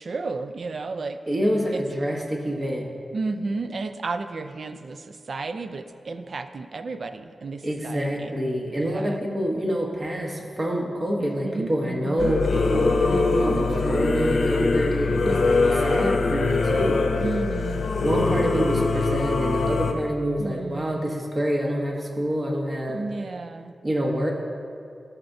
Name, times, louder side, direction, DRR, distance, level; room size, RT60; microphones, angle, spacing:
voice 1, 0.0-1.2 1.7-1.8 3.1-8.3 8.8-9.2 11.2-12.3 13.1-13.6 15.3-16.0 17.2-17.8 20.4-21.1 22.9-23.7, right 3 dB, 60° right, 9 dB, 0.4 m, -33 dB
voice 2, 1.3-2.9 7.6-17.3 18.0-23.0 23.8-24.3, equal, 35° right, -1 dB, 1.2 m, -26 dB
Singing / Musical instrument, 12.2-19.9, left 3 dB, 70° left, 0.7 m, -23 dB
13.5 x 5.8 x 2.7 m, 2.4 s
wide cardioid pair, 100°, 0 cm